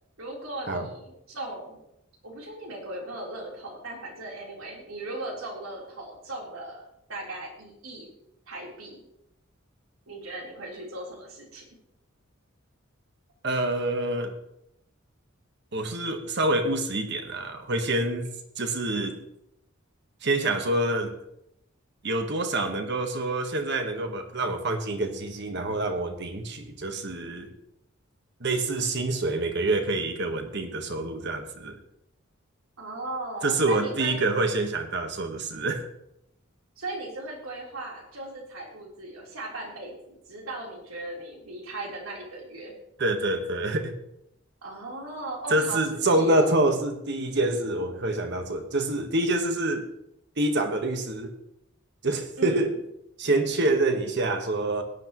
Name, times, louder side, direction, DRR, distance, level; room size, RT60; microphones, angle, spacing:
voice 1, 0.2-1.8 2.2-6.8 7.1-8.1 8.5-9.0 10.1-11.6 32.8-34.2 36.8-42.7 44.6-46.5 52.4-52.7, right 2 dB, 90° right, -2 dB, 3.8 m, -38 dB
voice 2, 13.4-14.3 15.7-18.3 18.6-19.1 20.2-21.1 22.0-27.5 28.4-31.8 33.4-35.8 43.0-43.9 45.5-49.8 50.4-51.3 52.0-52.7 53.2-54.8, right 2 dB, 55° right, 6 dB, 1.4 m, -26 dB
17.0 x 10.5 x 3.1 m, 0.79 s
head